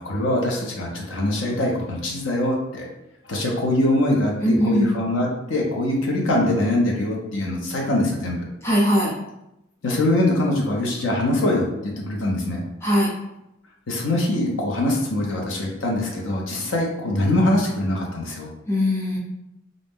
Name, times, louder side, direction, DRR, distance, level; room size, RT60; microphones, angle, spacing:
voice 1, 0.0-2.9 3.3-8.5 9.8-12.6 13.9-18.5, left 1 dB, 70° left, -1 dB, 0.6 m, -23 dB
voice 2, 4.4-4.9 8.6-9.1 12.8-13.1 18.7-19.2, equal, 10° left, -5 dB, 0.7 m, -20 dB
2.5 x 2.0 x 3.5 m, 0.87 s
head